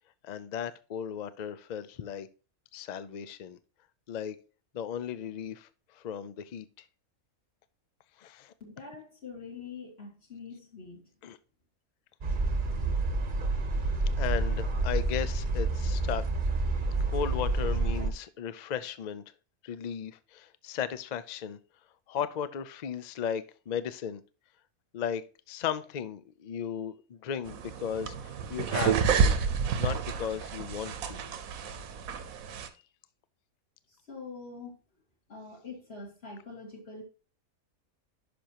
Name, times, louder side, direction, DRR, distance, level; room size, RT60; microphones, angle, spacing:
voice 1, 0.2-2.3 2.7-3.6 4.1-4.4 4.7-5.7 5.9-6.8 8.2-8.5 11.2-11.4 14.2-16.2 17.1-19.2 19.6-21.6 22.1-24.2 24.9-25.2 25.5-29.4 29.8-31.2, left 8 dB, 80° left, 0.3 m, -36 dB
voice 2, 8.6-11.1 33.9-34.8 35.3-37.0, left 4 dB, 45° left, 2.9 m, -44 dB
sound 1, 12.2-18.1, right 2 dB, 40° right, 1.0 m, -28 dB
sound 2, 27.5-32.7, right 6 dB, 75° right, 1.2 m, -29 dB
10.0 x 6.1 x 2.9 m
omnidirectional pair, 1.5 m